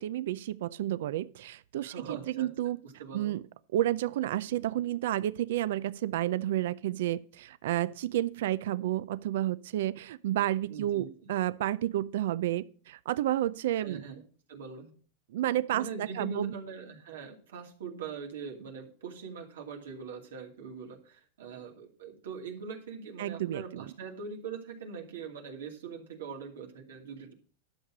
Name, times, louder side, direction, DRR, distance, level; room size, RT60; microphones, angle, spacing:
voice 1, 0.0-2.8 3.1-3.4 3.7-14.0 15.3-16.5 23.2-23.9, right 13 dB, 75° right, 0.5 m, -31 dB
voice 2, 1.8-3.4 10.7-11.1 13.8-14.2 14.5-14.9 15.7-27.3, right 5 dB, 90° right, 2.5 m, -42 dB
11.5 x 6.7 x 6.0 m
supercardioid pair, 140°, 0 cm